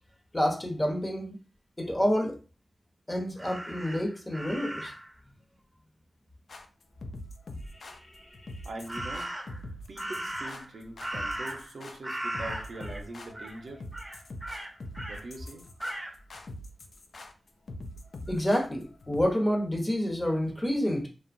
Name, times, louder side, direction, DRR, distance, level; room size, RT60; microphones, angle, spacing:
voice 1, 0.3-1.4 1.8-2.4 3.1-4.9 7.7-8.7 18.3-21.1, equal, 20° left, 1 dB, 0.8 m, -29 dB
Crow, 3.4-5.1 8.9-9.6 10.0-11.8 12.0-13.0 13.3-13.6 13.9-15.2 15.8-16.1, right 1 dB, 10° right, 0.6 m, -37 dB
sound 1, 6.5-19.2, left 1 dB, 75° left, 0.3 m, -43 dB
voice 2, 8.6-9.6 9.9-13.8 15.1-15.7, right 2 dB, 80° right, 3 dB, 0.5 m, -43 dB
2.8 x 2.1 x 2.5 m, 0.34 s
cardioid pair, 60°, 0 cm